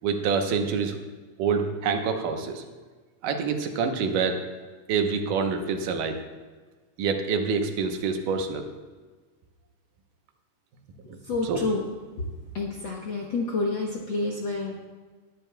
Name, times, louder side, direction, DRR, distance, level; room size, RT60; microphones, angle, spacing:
voice 1, 0.0-1.0 1.4-2.6 3.2-4.4 4.9-6.2 7.0-8.7 11.1-11.2 11.4-11.6, right 5 dB, 85° right, 5 dB, 2.6 m, -26 dB
voice 2, 11.2-11.8 12.2-12.3 12.5-14.8, left 3 dB, 60° left, -2 dB, 1.2 m, -28 dB
20.5 x 10.5 x 2.3 m, 1.4 s
omnidirectional pair, 3.6 m